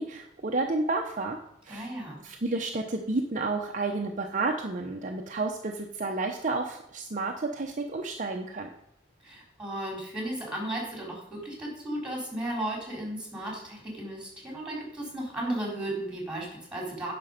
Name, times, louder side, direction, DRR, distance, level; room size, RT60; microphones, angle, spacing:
voice 1, 0.0-1.4 1.6-1.9 2.2-8.7, right 3 dB, 40° right, 2 dB, 0.8 m, -31 dB
voice 2, 1.7-2.2 9.2-17.1, right 1 dB, 5° right, -2 dB, 3.8 m, -35 dB
10.0 x 6.0 x 5.1 m, 0.80 s
head